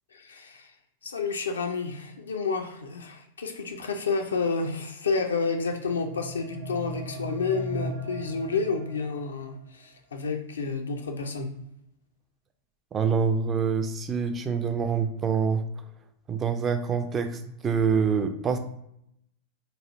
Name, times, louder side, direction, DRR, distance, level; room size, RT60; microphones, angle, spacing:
voice 1, 0.1-0.7 1.0-11.5, left 4 dB, 70° left, 5 dB, 0.4 m, -30 dB
sound 1, 5.6-9.6, right 1 dB, 55° right, 0.7 m, -38 dB
voice 2, 12.9-15.6 16.3-18.6, right 6 dB, 25° right, 7 dB, 0.3 m, -26 dB
3.1 x 2.3 x 2.5 m, 0.75 s
figure-of-eight pair, 90°, 0 cm